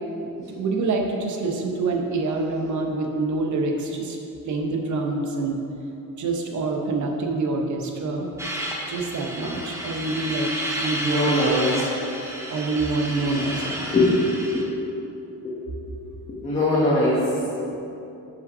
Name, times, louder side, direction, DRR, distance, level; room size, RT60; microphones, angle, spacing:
voice 1, 0.4-4.2 4.4-5.6 6.2-8.3 8.9-10.5 10.8-11.7 12.5-13.9, right 3 dB, 55° right, 1 dB, 0.8 m, -26 dB
sound 1, 8.4-14.6, equal, 10° right, 0.8 m, -31 dB
voice 2, 11.1-11.9 13.9-14.2 14.5-14.7 15.4-15.6 15.9-16.0 16.3-17.3, left 2 dB, 20° left, -8 dB, 1.1 m, -22 dB
5.6 x 5.3 x 5.4 m, 2.8 s
cardioid pair, 150°, 34 cm